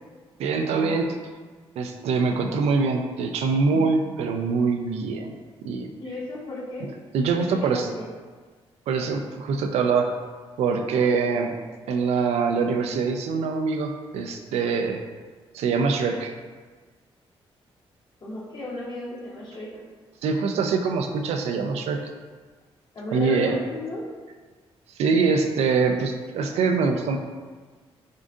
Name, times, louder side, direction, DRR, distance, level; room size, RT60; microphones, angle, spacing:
voice 1, 0.4-1.1 1.8-5.3 5.6-5.9 7.1-7.9 8.9-10.1 10.6-11.5 11.9-15.0 15.5-16.3 20.2-22.0 23.1-23.6 25.0-27.2, right 4 dB, 90° right, 4 dB, 0.4 m, -24 dB
voice 2, 6.0-6.9 7.5-8.1 18.2-19.8 22.9-24.0, left 1 dB, 45° left, -5 dB, 1.3 m, -34 dB
7.4 x 2.5 x 2.5 m, 1.4 s
cardioid pair, 80°, 10 cm